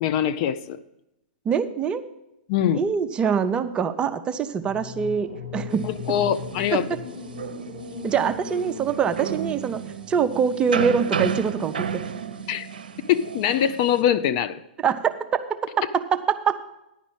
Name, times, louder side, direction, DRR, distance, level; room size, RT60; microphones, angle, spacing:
voice 1, 0.0-0.8 2.5-2.9 5.8-6.9 12.5-12.7 13.1-14.6, left 10 dB, 40° left, 12 dB, 0.4 m, -23 dB
voice 2, 1.5-2.0 2.7-5.8 6.7-7.0 8.0-9.8 10.1-12.0 14.8-16.6, right 7 dB, 20° right, 9 dB, 0.5 m, -24 dB
sound 1, 4.6-10.7, left 4 dB, 90° left, 4.7 m, -38 dB
sound 2, 5.7-14.0, right 6 dB, 70° right, 0.7 m, -33 dB
10.5 x 5.0 x 7.2 m, 0.90 s
figure-of-eight pair, 110°, 5 cm